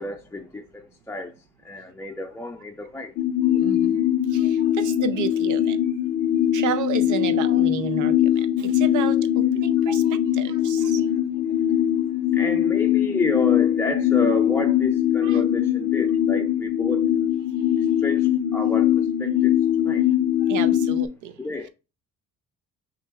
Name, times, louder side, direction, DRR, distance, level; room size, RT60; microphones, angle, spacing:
voice 1, 0.0-1.3 1.6-3.1 9.9-10.0 10.8-11.5 12.3-17.3 17.8-19.5 19.8-20.0 21.4-21.7, left 2 dB, 10° left, 0.4 m, -31 dB
sound 1, 3.2-21.1, left 11 dB, 90° left, 0.5 m, -21 dB
voice 2, 3.5-5.8 6.5-10.0 10.4-11.0 15.2-15.4 20.5-21.3, right 8 dB, 75° right, 0.6 m, -32 dB
6.1 x 2.5 x 3.3 m
cardioid pair, 90°, 30 cm